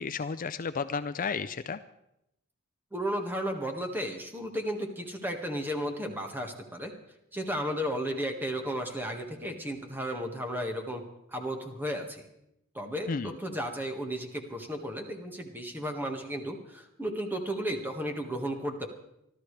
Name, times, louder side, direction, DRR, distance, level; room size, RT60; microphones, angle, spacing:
voice 1, 0.0-1.8 13.1-13.3, left 5 dB, 40° left, 12 dB, 0.5 m, -32 dB
voice 2, 2.9-6.9 7.3-11.0 11.3-12.3 12.7-18.9, equal, 10° right, 3 dB, 1.7 m, -34 dB
25.5 x 13.0 x 3.3 m, 0.83 s
head